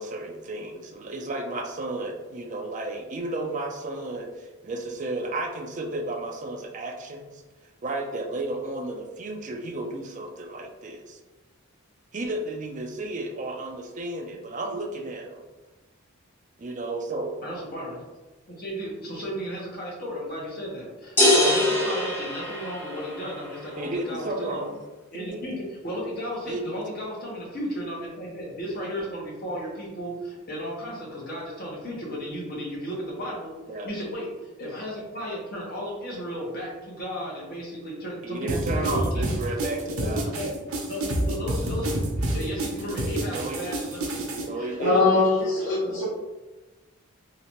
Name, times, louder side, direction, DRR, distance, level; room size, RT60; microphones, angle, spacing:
voice 1, 0.0-7.4 7.8-11.2 12.1-15.5 16.6-17.3 23.8-24.8 25.1-25.4 26.5-26.8 33.7-33.9 38.2-40.4 43.3-43.6 44.4-45.2, right 2 dB, 35° right, 2 dB, 0.4 m, -33 dB
voice 2, 17.4-18.0 18.5-24.7 25.1-33.5 33.8-39.4 39.8-40.5 40.9-45.5 45.8-46.0, equal, 45° left, -4 dB, 1.1 m, -34 dB
sound 1, 21.2-23.2, left 1 dB, 10° left, 0.8 m, -22 dB
sound 2, 38.5-44.4, right 1 dB, 90° right, 0.7 m, -28 dB
voice 3, 44.8-46.0, left 3 dB, 75° left, -6 dB, 0.8 m, -22 dB
3.2 x 2.9 x 2.9 m, 1.1 s
head